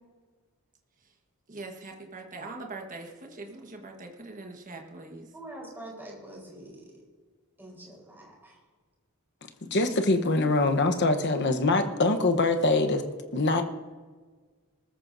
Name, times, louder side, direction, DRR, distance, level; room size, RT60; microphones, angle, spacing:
voice 1, 1.5-5.3, right 3 dB, 40° right, 2 dB, 1.4 m, -42 dB
voice 2, 5.3-6.9 7.6-8.5, right 1 dB, 10° right, -3 dB, 4.3 m, -44 dB
voice 3, 9.6-13.0 13.3-13.6, left 2 dB, 55° left, 7 dB, 1.0 m, -24 dB
20.0 x 14.0 x 2.7 m, 1.4 s
head